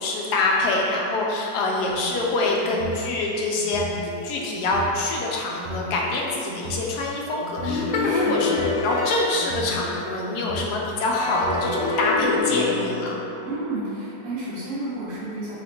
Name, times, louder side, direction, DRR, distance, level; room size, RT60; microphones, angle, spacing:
voice 1, 0.0-13.2, left 2 dB, 70° left, -2 dB, 1.0 m, -25 dB
sound 1, 2.0-3.0 3.6-4.9 5.5-6.8 7.4-8.8 9.3-10.7 11.3-11.9, equal, 80° right, 1.4 m, -36 dB
sound 2, 7.6-10.5 11.1-14.0, left 3 dB, 90° left, 1.4 m, -27 dB
voice 2, 8.0-8.4 13.4-15.5, right 2 dB, 40° right, -13 dB, 1.5 m, -31 dB
4.2 x 2.5 x 4.3 m, 2.7 s
omnidirectional pair, 2.0 m